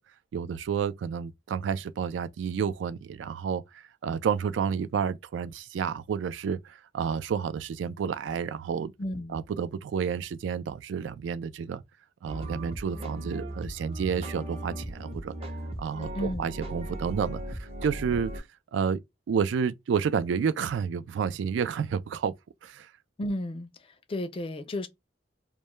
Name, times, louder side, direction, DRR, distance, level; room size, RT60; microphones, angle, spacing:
voice 1, 0.3-8.9 9.3-11.8 12.2-15.3 15.8-18.4 18.7-19.0 19.3-22.3 22.6-22.9, right 7 dB, 75° right, 0.3 m, -30 dB
voice 2, 9.0-9.4 16.2-16.5 23.2-23.7 24.1-24.9, left 1 dB, 30° left, 0.4 m, -32 dB
sound 1, 12.2-18.4, right 1 dB, 35° right, 0.6 m, -37 dB
2.2 x 2.1 x 2.9 m
head